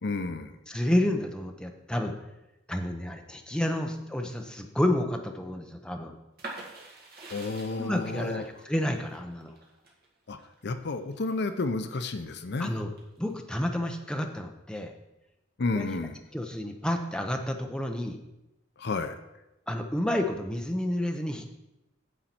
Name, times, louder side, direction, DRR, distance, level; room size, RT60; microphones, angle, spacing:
voice 1, 0.0-0.6 7.3-8.4 10.3-12.8 15.6-16.2 18.8-19.2, left 3 dB, 60° left, 10 dB, 0.6 m, -31 dB
voice 2, 0.7-2.1 2.7-6.1 7.8-9.5 12.6-12.9 13.2-14.9 15.7-16.0 16.3-18.2 19.7-21.5, left 1 dB, 5° left, 4 dB, 0.7 m, -30 dB
sound 1, 6.4-12.0 12.5-13.3, right 2 dB, 55° right, 1.9 m, -46 dB
9.3 x 7.5 x 4.4 m, 0.95 s
head